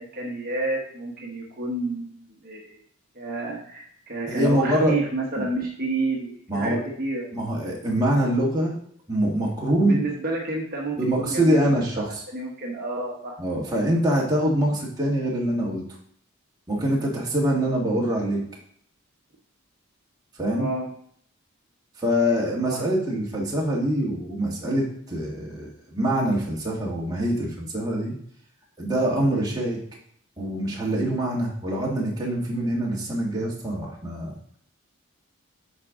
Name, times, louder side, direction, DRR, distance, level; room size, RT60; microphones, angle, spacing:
voice 1, 0.0-2.8 3.1-7.3 9.9-11.8 12.3-13.4 20.5-20.8 22.7-22.8, right 2 dB, 40° right, -2 dB, 1.1 m, -30 dB
voice 2, 4.3-5.0 5.4-5.5 6.5-6.8 7.3-8.8 9.1-10.0 11.0-12.2 13.4-15.8 16.7-18.4 20.4-20.7 22.0-28.1 28.8-29.8 30.4-34.3, right 1 dB, 15° right, -4 dB, 1.6 m, -24 dB
8.0 x 5.0 x 3.7 m, 0.64 s
head